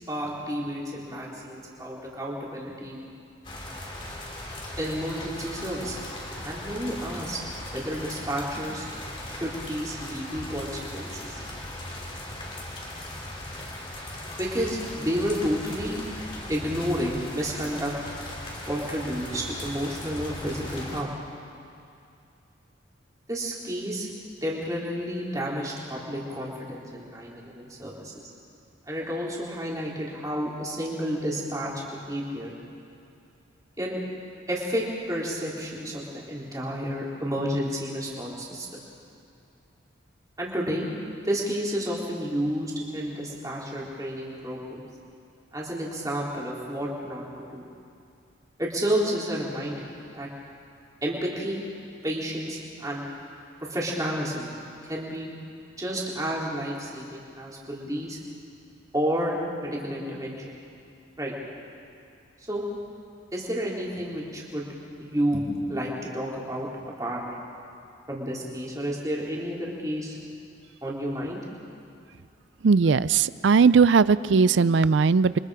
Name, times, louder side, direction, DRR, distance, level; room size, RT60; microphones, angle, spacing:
voice 1, 0.1-3.0 4.8-6.0 6.4-7.4 7.7-8.9 9.3-11.4 14.4-16.0 16.5-17.9 18.7-21.1 23.3-24.1 24.4-28.3 28.9-31.7 32.1-32.6 33.8-34.0 34.5-38.7 40.4-40.9 41.2-44.9 45.5-47.6 48.6-49.9 50.1-50.3 51.0-51.6 52.0-53.1 53.7-54.5 54.9-55.3 55.8-58.2 58.9-59.4 59.6-60.5 61.2-61.3 62.4-62.6 63.3-64.7 65.0-67.2 68.1-70.2 70.8-71.4, equal, 15° right, -4 dB, 3.6 m, -31 dB
sound 1, 3.4-21.0, left 1 dB, 25° left, 3.0 m, -38 dB
voice 2, 72.6-75.4, right 5 dB, 70° right, 17 dB, 0.4 m, -19 dB
28.5 x 24.0 x 4.9 m, 2.5 s
head